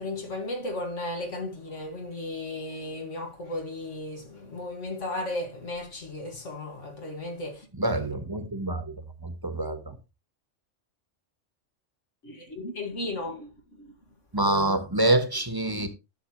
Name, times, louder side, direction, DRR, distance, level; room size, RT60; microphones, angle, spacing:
voice 1, 0.0-7.7 12.2-13.5 13.8-13.9, left 2 dB, 80° left, 2.4 m, -35 dB
voice 2, 7.8-8.9 9.2-9.9 14.3-15.9, right 1 dB, 20° right, 1.3 m, -26 dB
11.5 x 7.6 x 3.1 m
omnidirectional pair, 1.2 m